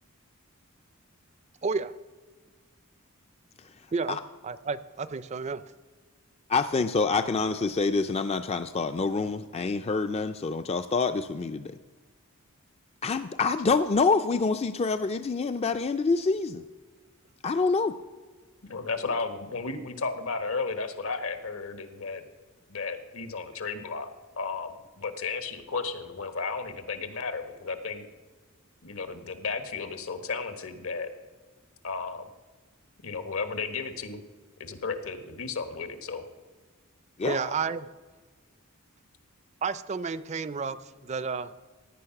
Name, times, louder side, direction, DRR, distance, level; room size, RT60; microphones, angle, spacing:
voice 1, 1.6-1.9 3.9-4.2 4.4-5.6 37.2-37.9 39.6-41.5, right 5 dB, 30° right, 15 dB, 0.4 m, -31 dB
voice 2, 6.5-11.8 13.0-16.6 17.4-17.9 37.2-37.4, left 4 dB, 30° left, 9 dB, 0.4 m, -26 dB
voice 3, 18.6-22.2 22.7-28.0 28.8-31.1 31.8-32.3 33.0-34.2 34.6-36.2 37.2-37.5, left 4 dB, 75° left, 8 dB, 1.4 m, -34 dB
16.5 x 9.8 x 5.9 m, 1.3 s
head